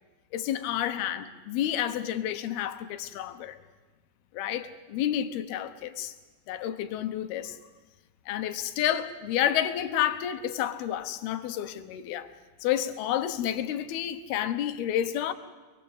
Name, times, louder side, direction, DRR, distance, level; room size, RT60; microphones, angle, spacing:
voice 1, 0.3-3.6 4.3-6.1 6.5-7.6 8.3-12.3 12.6-15.3, left 11 dB, 90° left, 3.1 m, -30 dB
27.0 x 20.5 x 8.0 m
omnidirectional pair, 4.3 m